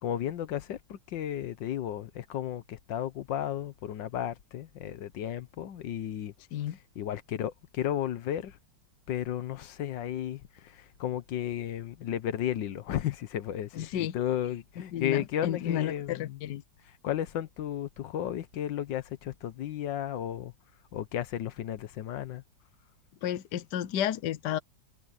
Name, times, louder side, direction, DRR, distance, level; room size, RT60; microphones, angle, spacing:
voice 1, 0.0-6.3 7.0-8.6 9.1-16.4 17.0-20.5 20.9-22.4, left 11 dB, 85° left, 1.6 m, -34 dB
voice 2, 13.7-14.1 14.9-16.6 23.2-24.6, left 11 dB, 70° left, 1.4 m, -32 dB
omnidirectional pair, 1.9 m